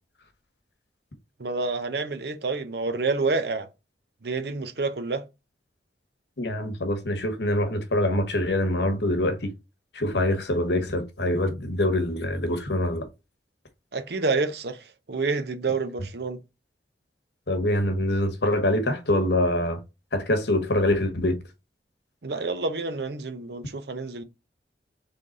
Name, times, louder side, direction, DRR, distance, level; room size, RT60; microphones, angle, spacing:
voice 1, 1.4-3.7 4.2-5.2 13.9-16.4 22.2-24.2, right 3 dB, 65° right, 0.7 m, -28 dB
voice 2, 6.4-9.5 9.9-13.1 17.5-19.8 20.1-21.4, left 1 dB, 70° left, 1.1 m, -24 dB
3.8 x 3.4 x 3.9 m
head